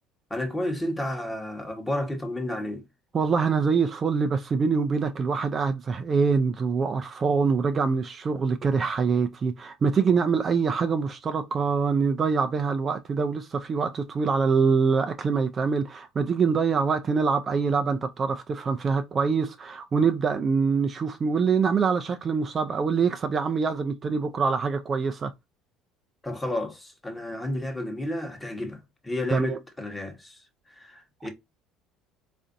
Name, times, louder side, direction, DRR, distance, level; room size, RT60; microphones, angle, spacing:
voice 1, 0.3-2.8 26.2-30.4 30.7-31.3, left 1 dB, 10° left, 1.0 m, -31 dB
voice 2, 3.1-25.3 29.3-29.6, right 5 dB, 30° right, 0.3 m, -24 dB
4.1 x 2.5 x 2.5 m
cardioid pair, 120°, 0 cm